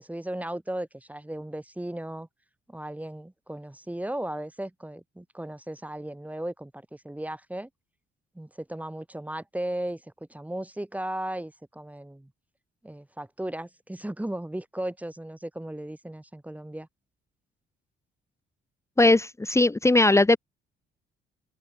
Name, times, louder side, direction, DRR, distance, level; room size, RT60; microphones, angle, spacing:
voice 1, 0.0-2.3 2.7-7.7 8.3-10.0 10.3-12.3 12.8-16.9, right 1 dB, 5° right, 2.4 m, -36 dB
voice 2, 19.0-20.4, left 2 dB, 15° left, 1.9 m, -19 dB
cardioid pair, 90°, 20 cm